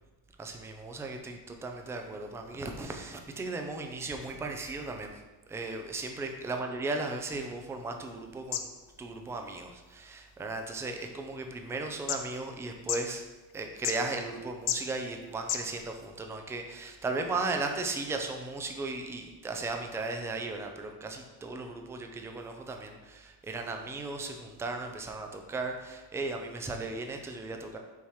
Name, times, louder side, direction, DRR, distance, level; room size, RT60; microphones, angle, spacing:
voice 1, 0.4-5.2 5.5-8.7 9.0-13.2 13.5-27.8, right 3 dB, 5° right, 4 dB, 0.3 m, -36 dB
sound 1, 6.8-16.1, left 9 dB, 60° left, 0.7 m, -40 dB
7.0 x 2.9 x 4.7 m, 1.2 s
cardioid pair, 135°, 44 cm